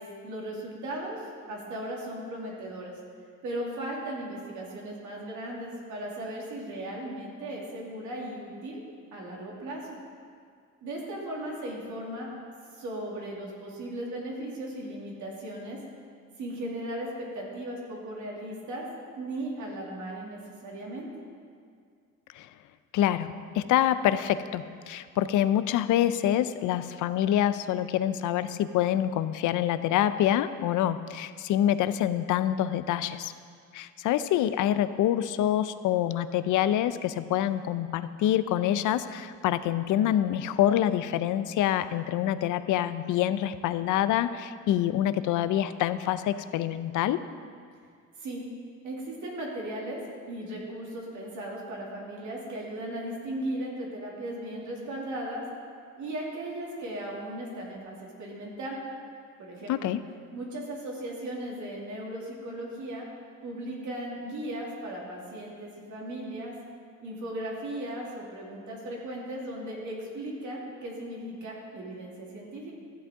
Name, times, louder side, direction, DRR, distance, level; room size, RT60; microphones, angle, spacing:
voice 1, 0.0-3.0 3.4-8.8 9.1-10.0 10.8-12.3 12.7-15.8 16.4-18.9 19.2-21.1 48.2-48.4 48.8-50.0 50.3-55.5 56.0-58.8 59.4-59.9 60.3-63.1 63.4-66.6 67.0-72.7, right 1 dB, 75° right, -3 dB, 2.5 m, -37 dB
voice 2, 22.9-33.3 33.7-47.2 59.7-60.0, left 11 dB, 80° left, 13 dB, 0.5 m, -26 dB
14.0 x 8.1 x 3.6 m, 2.2 s
cardioid pair, 90°, 30 cm